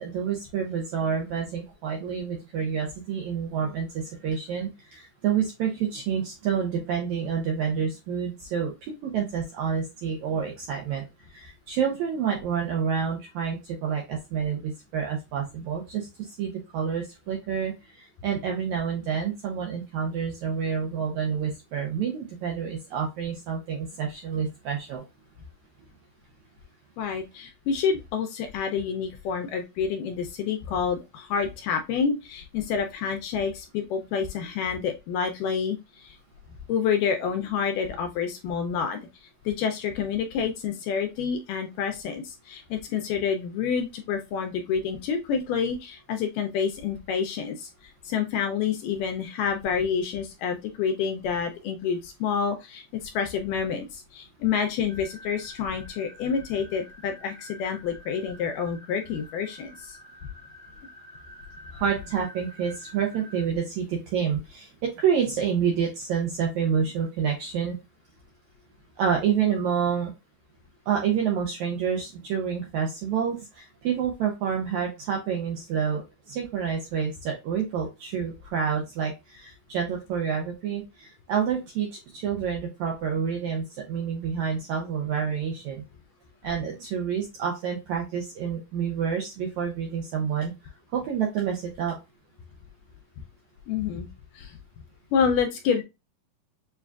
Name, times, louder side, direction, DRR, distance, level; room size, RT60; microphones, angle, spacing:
voice 1, 0.0-11.0 11.3-25.0 61.7-67.8 69.0-70.1 70.9-85.8 86.4-90.5 90.9-91.9, right 7 dB, 80° right, 0 dB, 1.7 m, -28 dB
voice 2, 27.0-36.2 36.7-39.1 39.5-47.7 48.1-60.0 93.7-94.1 94.4-94.6 95.1-95.8, left 6 dB, 80° left, 5 dB, 1.9 m, -28 dB
sound 1, 54.9-63.5, equal, 40° right, 1.2 m, -49 dB
6.9 x 2.4 x 2.2 m, 0.25 s
omnidirectional pair, 4.1 m